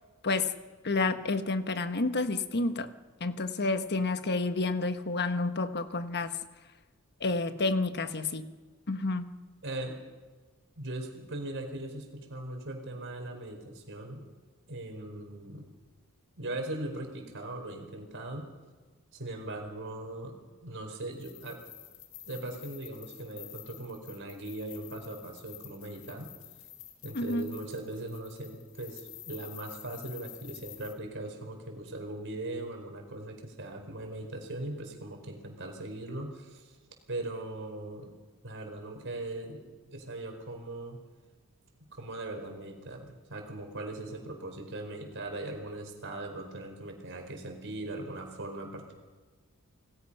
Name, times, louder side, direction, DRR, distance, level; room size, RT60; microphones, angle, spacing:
voice 1, 0.8-2.9 3.2-6.4 7.2-8.5 8.9-9.3 27.1-27.5, left 3 dB, 50° left, 9 dB, 1.3 m, -29 dB
voice 2, 9.6-10.0 10.8-14.3 14.7-15.6 16.4-18.5 19.1-20.3 20.6-21.6 22.3-26.3 27.0-36.8 37.1-38.1 38.4-41.0 41.9-48.9, right 2 dB, 55° right, 3 dB, 4.9 m, -39 dB
sound 1, 21.1-30.9, left 12 dB, 65° left, 2.3 m, -50 dB
28.5 x 19.5 x 5.7 m, 1.4 s
head